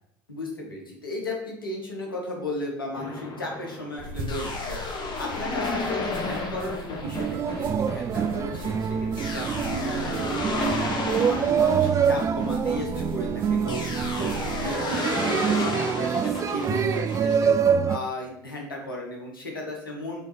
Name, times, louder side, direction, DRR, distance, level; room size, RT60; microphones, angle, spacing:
voice 1, 0.3-4.8 5.2-10.9 11.2-17.6 17.9-20.2, left 1 dB, 85° left, 0 dB, 1.4 m, -35 dB
sound 1, 3.0-13.1 13.7-17.4, left 3 dB, 40° left, 1.3 m, -33 dB
sound 2, 4.0-14.7, left 1 dB, 45° right, 1.2 m, -40 dB
sound 3, 7.0-18.0, right 7 dB, 25° right, 0.3 m, -25 dB
8.3 x 3.9 x 3.2 m, 0.74 s
figure-of-eight pair, 65°, 11 cm